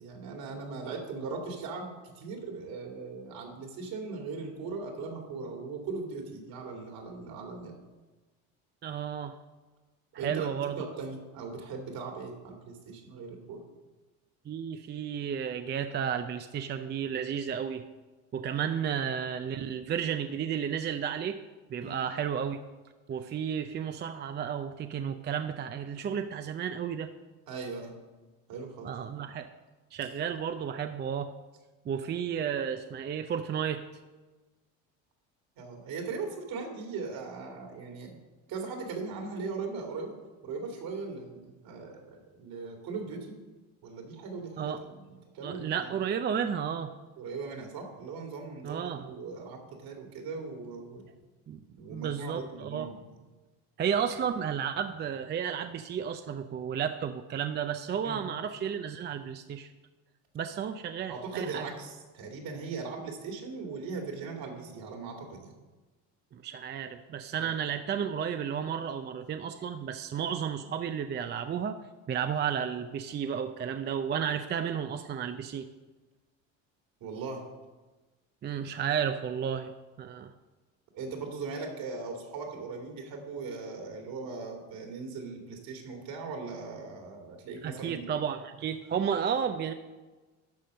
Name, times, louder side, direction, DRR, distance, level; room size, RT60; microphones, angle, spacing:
voice 1, 0.0-7.7 10.2-10.5 10.8-13.6 21.8-22.0 27.5-27.9 28.5-28.9 35.6-38.2 38.5-40.2 40.4-43.4 43.8-45.9 47.2-51.1 51.8-53.0 58.0-58.2 61.1-65.5 67.4-67.5 77.0-77.4 80.9-88.1, right 4 dB, 65° right, 2 dB, 2.4 m, -39 dB
voice 2, 8.8-9.4 10.1-11.0 14.5-17.8 18.3-21.4 21.7-22.6 23.1-27.1 28.8-29.5 29.9-31.3 31.9-33.8 44.6-44.8 45.4-46.9 48.6-49.1 51.5-51.6 51.9-52.9 53.8-59.7 60.3-61.7 66.3-71.8 72.1-75.7 78.4-79.7 80.0-80.3 87.6-89.7, right 8 dB, 30° right, 8 dB, 0.5 m, -32 dB
12.0 x 4.3 x 6.3 m, 1.2 s
supercardioid pair, 90°, 39 cm